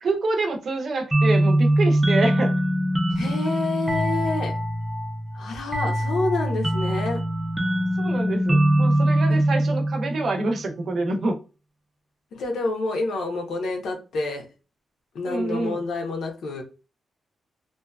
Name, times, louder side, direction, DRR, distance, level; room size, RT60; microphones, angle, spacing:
voice 1, 0.0-2.6 8.0-11.4 15.2-15.8, right 2 dB, 55° right, 0.6 m, -26 dB
sound 1, 1.1-10.5, right 1 dB, 10° right, 0.5 m, -22 dB
voice 2, 3.1-4.5 5.3-7.2 12.3-14.4 15.1-16.6, left 3 dB, 85° left, 0.9 m, -28 dB
2.7 x 2.3 x 2.3 m
wide cardioid pair, 130°, 0 cm